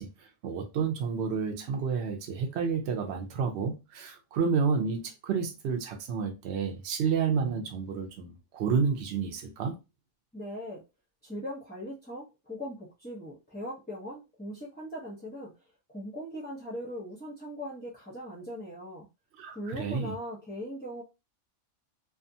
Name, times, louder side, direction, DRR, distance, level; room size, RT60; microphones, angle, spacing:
voice 1, 0.0-9.8 19.4-20.1, right 5 dB, 65° right, 0.9 m, -30 dB
voice 2, 10.3-10.8 11.2-15.5 15.9-19.1 19.5-21.0, equal, 15° left, 0.4 m, -40 dB
2.5 x 2.4 x 2.6 m
omnidirectional pair, 1.3 m